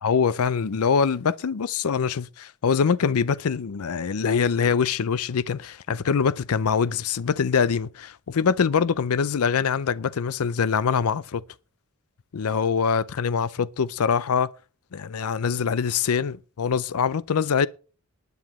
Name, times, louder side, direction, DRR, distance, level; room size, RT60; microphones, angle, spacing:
voice 1, 0.0-11.4 12.3-14.5 14.9-17.7, left 6 dB, 85° left, 0.5 m, -24 dB
19.0 x 9.4 x 3.0 m
head